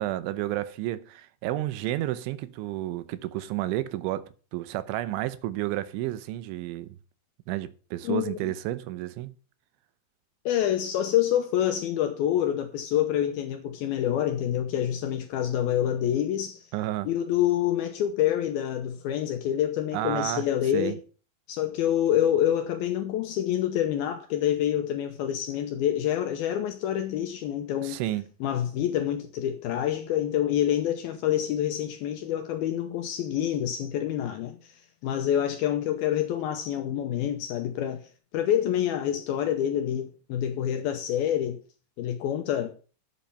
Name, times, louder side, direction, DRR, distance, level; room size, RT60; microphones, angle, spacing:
voice 1, 0.0-4.3 4.5-7.0 7.5-9.3 16.7-17.1 19.9-20.5 20.7-21.0 27.8-28.2, right 15 dB, 90° right, 3.2 m, -31 dB
voice 2, 8.0-8.5 10.5-16.7 17.0-21.0 21.5-28.0 28.4-41.6 42.0-42.7, left 11 dB, 80° left, 2.3 m, -27 dB
10.5 x 8.1 x 5.7 m
omnidirectional pair, 5.3 m